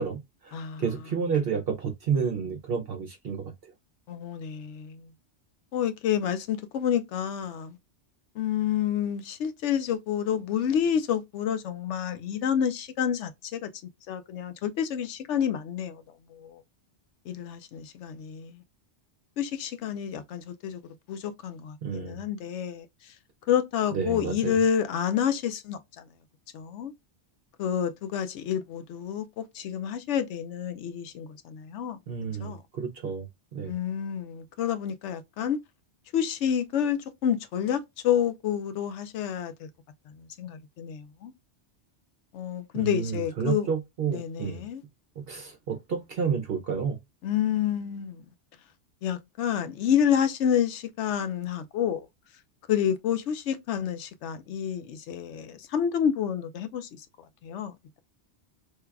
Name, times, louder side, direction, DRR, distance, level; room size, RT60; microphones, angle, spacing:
voice 1, 0.0-3.7 21.8-22.2 23.9-24.6 32.1-33.7 42.7-44.6 45.2-47.0, right 6 dB, 60° right, 0.8 m, -30 dB
voice 2, 0.5-0.8 4.1-5.1 5.7-7.8 8.4-13.7 14.1-16.0 16.3-16.6 17.3-18.6 19.4-22.9 23.5-25.8 26.5-26.9 27.6-32.0 32.4-32.6 33.6-35.6 36.1-39.7 40.4-41.3 42.3-43.7 44.1-44.8 47.2-48.2 49.0-52.1 52.7-57.0 57.4-57.7, left 9 dB, 85° left, 0.9 m, -29 dB
3.2 x 2.3 x 3.4 m
omnidirectional pair, 1.2 m